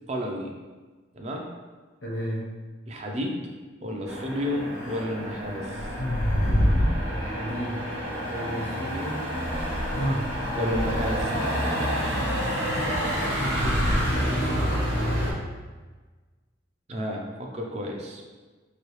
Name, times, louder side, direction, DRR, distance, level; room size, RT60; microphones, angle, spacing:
voice 1, 0.1-0.5 1.1-1.5 2.9-3.4 3.8-5.9 10.6-11.2 16.9-18.2, equal, 35° right, 1 dB, 0.4 m, -31 dB
voice 2, 2.0-2.5 4.5-4.7 7.0-7.9 8.3-9.3 10.9-11.6 13.7-15.0, equal, 70° left, -3 dB, 0.9 m, -35 dB
Motor vehicle (road), 4.1-15.3, equal, 85° right, 0.9 m, -29 dB
sound 1, 4.8-5.0 5.8-7.1 8.3-8.4 9.4-11.2 13.4-14.8, equal, 40° left, 0.4 m, -27 dB
3.0 x 2.7 x 3.0 m, 1.3 s
head